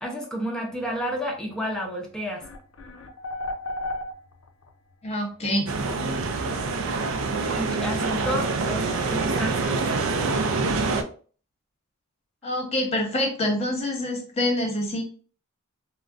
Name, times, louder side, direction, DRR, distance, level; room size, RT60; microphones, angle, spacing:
voice 1, 0.0-2.4 7.5-9.8, equal, 5° left, -1 dB, 0.5 m, -30 dB
sound 1, 1.8-1.9 2.4-4.7, left 1 dB, 75° left, 0.5 m, -33 dB
voice 2, 5.0-5.7 12.4-15.0, left 1 dB, 30° left, 1 dB, 0.9 m, -26 dB
sound 2, 5.7-11.0, right 3 dB, 70° right, 0.4 m, -26 dB
3.7 x 2.1 x 2.4 m, 0.41 s
head